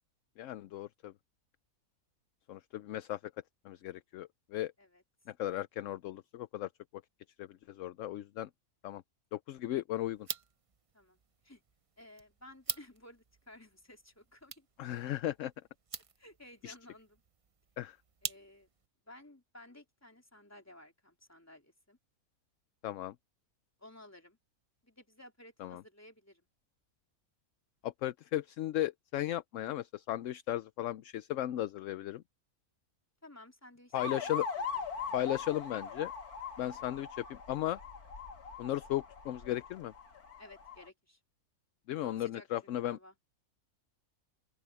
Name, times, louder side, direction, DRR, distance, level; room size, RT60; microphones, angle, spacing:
voice 1, 0.4-1.1 2.5-3.2 3.6-4.7 5.3-6.7 7.4-8.5 8.8-9.0 9.3-10.3 14.8-15.5 16.6-16.7 17.8-18.0 22.8-23.1 25.6-25.8 27.8-32.2 33.9-34.4 35.1-36.1 36.6-37.8 38.6-39.9 41.9-43.0, left 13 dB, 65° left, 0.8 m, -36 dB
sound 1, 10.1-18.9, right 6 dB, 50° right, 0.4 m, -46 dB
voice 2, 12.0-14.7 16.2-17.2 18.2-18.7 19.1-22.0 23.8-24.4 24.8-26.4 33.2-34.8 40.4-41.2 42.0-43.1, left 1 dB, 10° left, 3.6 m, -56 dB
sound 2, 33.9-40.9, left 5 dB, 85° left, 2.5 m, -41 dB
open air
omnidirectional pair, 1.6 m